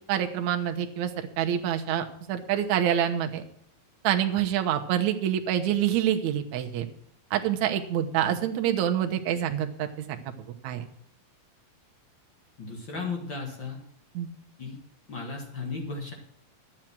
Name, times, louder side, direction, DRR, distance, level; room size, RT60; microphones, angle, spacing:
voice 1, 0.1-3.4 4.0-6.9 7.3-10.2 10.6-10.9 14.1-14.3, right 10 dB, 65° right, 5 dB, 2.1 m, -26 dB
voice 2, 12.6-13.8 14.6-14.8 15.1-16.1, left 4 dB, 40° left, 1 dB, 2.0 m, -35 dB
11.0 x 8.9 x 6.1 m, 0.69 s
omnidirectional pair, 4.1 m